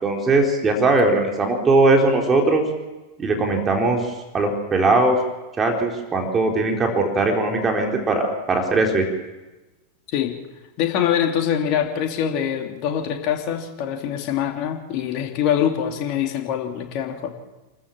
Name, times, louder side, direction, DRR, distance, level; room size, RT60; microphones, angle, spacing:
voice 1, 0.0-2.6 3.2-4.1 4.3-5.2 5.6-9.1, right 2 dB, 20° right, 2 dB, 4.0 m, -19 dB
voice 2, 10.8-17.3, left 9 dB, 40° left, 3 dB, 3.1 m, -24 dB
28.5 x 14.0 x 7.4 m, 1.1 s
figure-of-eight pair, 90°, 0 cm